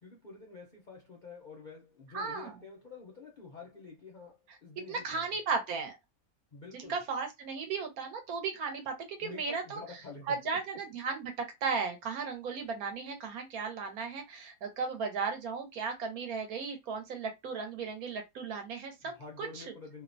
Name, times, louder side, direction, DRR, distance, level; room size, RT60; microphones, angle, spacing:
voice 1, 0.0-5.3 6.5-7.0 9.2-10.3 19.0-20.0, left 4 dB, 55° left, 0.5 m, -48 dB
voice 2, 2.1-2.5 4.9-6.0 6.7-9.8 10.3-19.7, right 5 dB, 75° right, 1.2 m, -35 dB
2.8 x 2.1 x 2.5 m
omnidirectional pair, 1.6 m